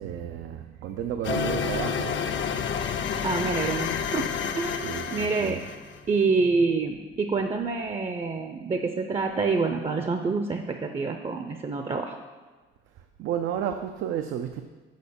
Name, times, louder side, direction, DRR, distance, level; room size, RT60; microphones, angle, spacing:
voice 1, 0.0-2.2 4.8-5.6 13.2-14.6, right 9 dB, 80° right, 7 dB, 0.5 m, -32 dB
sound 1, 1.2-6.0, left 7 dB, 70° left, 0.6 m, -30 dB
Acoustic guitar, 1.3-5.6 6.4-6.5, left 5 dB, 25° left, 0.6 m, -36 dB
voice 2, 3.2-4.3 4.6-5.6 6.1-12.2, right 4 dB, 30° right, 6 dB, 0.5 m, -27 dB
6.5 x 5.0 x 6.8 m, 1.3 s
cardioid pair, 90°, 20 cm